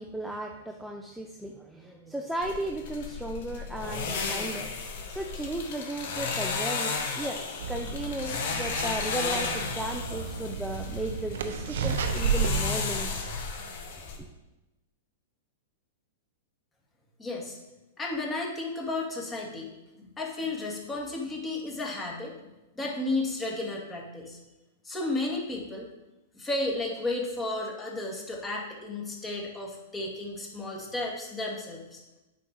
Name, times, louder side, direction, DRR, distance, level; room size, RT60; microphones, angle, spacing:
voice 1, 0.0-13.1, right 1 dB, 5° right, 2 dB, 0.7 m, -35 dB
sound 1, 2.4-14.2, left 4 dB, 60° left, 1.6 m, -34 dB
sound 2, 7.6-12.6, right 5 dB, 70° right, 0.8 m, -32 dB
voice 2, 17.2-17.6 18.0-19.7 20.2-22.3 22.8-24.4 24.8-25.9 26.3-32.0, left 2 dB, 15° left, -1 dB, 2.2 m, -33 dB
8.3 x 5.4 x 4.7 m, 1.0 s
hypercardioid pair, 115°, 0 cm